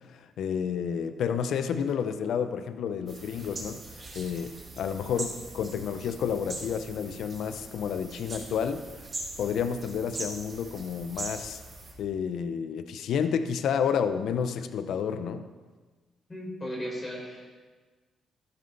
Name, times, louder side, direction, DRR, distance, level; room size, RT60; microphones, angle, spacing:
voice 1, 0.1-8.8 9.4-11.6 12.0-15.5, left 7 dB, 75° left, 10 dB, 0.8 m, -30 dB
sound 1, 3.1-11.9, right 2 dB, 35° right, 5.2 m, -41 dB
voice 2, 16.3-17.5, equal, 25° left, -3 dB, 5.0 m, -36 dB
14.5 x 13.5 x 4.1 m, 1.4 s
cardioid pair, 90°, 0 cm